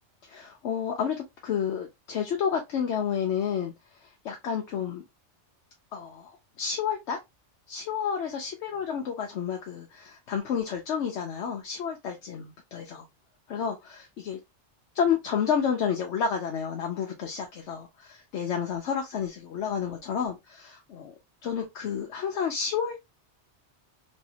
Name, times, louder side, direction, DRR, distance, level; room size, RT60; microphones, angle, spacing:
voice 1, 0.2-1.2 1.4-3.7 4.0-5.0 5.9-7.2 7.7-13.1 13.5-14.4 14.9-21.1 21.4-23.0, left 7 dB, 75° left, 1.0 m, -30 dB
3.1 x 2.7 x 2.7 m
omnidirectional pair, 1.2 m